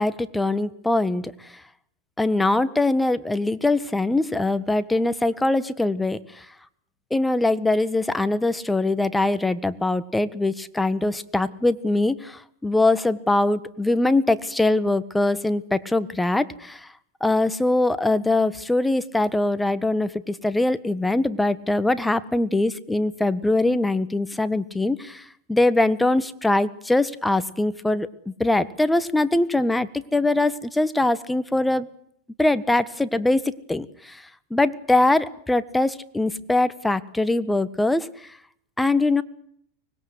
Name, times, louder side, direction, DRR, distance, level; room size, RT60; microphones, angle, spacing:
voice 1, 0.0-1.5 2.2-6.4 7.1-16.9 17.2-31.9 32.4-34.2 34.5-38.1 38.8-39.2, left 2 dB, 5° left, 13 dB, 1.5 m, -22 dB
24.5 x 20.5 x 8.0 m, 0.68 s
supercardioid pair, 120°, 0 cm